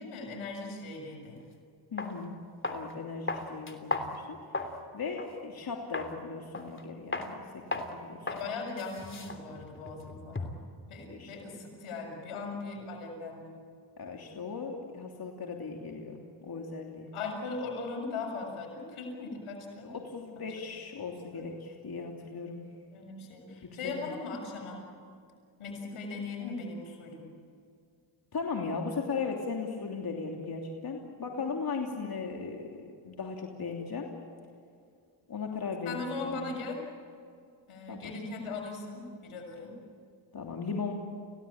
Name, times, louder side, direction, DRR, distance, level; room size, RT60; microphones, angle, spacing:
voice 1, 0.0-1.4 8.3-10.5 10.9-13.6 17.1-19.9 20.4-20.5 21.3-21.4 22.9-24.8 25.6-27.3 31.2-31.3 35.8-36.8 37.7-39.7, left 3 dB, 85° left, 1 dB, 7.0 m, -39 dB
sound 1, 1.4-1.5 2.0-2.1 2.6-2.9 3.3-4.8 5.2-5.3 5.9-6.2 6.5-6.8 7.1-7.3 7.7-7.9 8.3-8.5 8.8-10.7, left 2 dB, 25° left, 3.2 m, -36 dB
voice 2, 1.9-2.3 2.7-4.4 4.9-8.3 11.1-11.5 14.0-17.1 19.8-22.6 23.6-23.9 28.3-34.1 35.3-36.4 37.9-38.1 40.3-40.9, left 4 dB, 45° left, 1 dB, 3.1 m, -37 dB
29.5 x 17.0 x 8.8 m, 2.3 s
cardioid pair, 70°, 49 cm